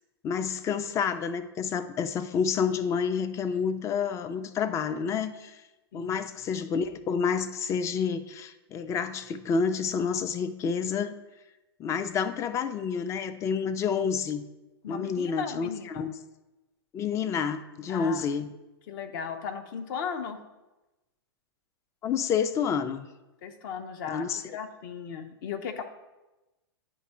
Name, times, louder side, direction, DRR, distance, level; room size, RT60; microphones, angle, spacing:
voice 1, 0.2-5.6 5.9-11.1 11.8-14.4 14.9-16.1 16.9-18.5 22.0-23.1 24.1-24.4, left 6 dB, 20° left, 11 dB, 0.4 m, -29 dB
voice 2, 14.8-16.1 17.9-18.2 18.9-20.4 23.4-25.8, left 6 dB, 50° left, 8 dB, 0.7 m, -36 dB
9.2 x 3.6 x 4.2 m, 1.1 s
hypercardioid pair, 110°, 14 cm